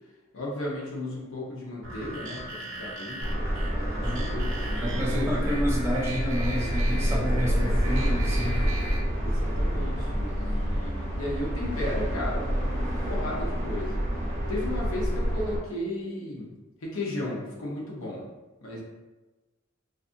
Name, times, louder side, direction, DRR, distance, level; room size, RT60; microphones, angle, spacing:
voice 1, 0.3-3.3 3.7-5.5 7.0-7.9 9.2-12.7 13.1-14.0 14.5-16.5 16.8-18.2 18.6-18.8, left 1 dB, 85° left, -4 dB, 0.8 m, -35 dB
sound 1, 1.8-9.0, right 2 dB, 70° right, 0.5 m, -38 dB
sound 2, 3.2-15.6, equal, 40° right, 0.9 m, -28 dB
voice 2, 4.0-4.3 4.8-8.6, equal, 10° right, -5 dB, 0.3 m, -30 dB
2.5 x 2.5 x 2.5 m, 1.2 s
head